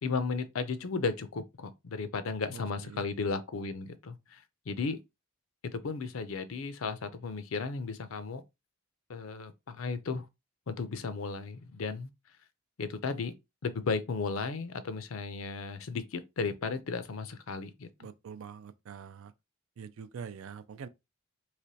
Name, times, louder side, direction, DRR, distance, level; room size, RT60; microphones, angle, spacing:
voice 1, 0.0-4.4 4.7-5.0 5.7-8.4 9.1-10.3 10.7-12.1 12.8-13.3 13.6-17.9, left 4 dB, 70° left, 0.5 m, -34 dB
voice 2, 2.5-3.0 18.0-19.3 19.8-20.9, right 6 dB, 70° right, 0.4 m, -45 dB
3.3 x 3.0 x 2.7 m
head